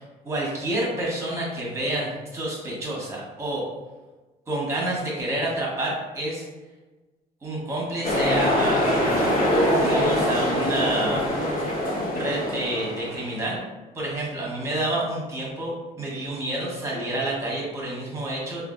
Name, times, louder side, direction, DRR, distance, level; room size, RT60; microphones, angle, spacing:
voice 1, 0.0-3.6 4.5-6.5 7.4-9.5 9.8-11.2 12.1-13.6 13.9-18.7, right 1 dB, 15° right, -4 dB, 1.1 m, -29 dB
sound 1, 8.0-13.4, equal, 55° left, 1.0 m, -23 dB
3.5 x 2.4 x 2.5 m, 1.2 s
cardioid pair, 110°, 17 cm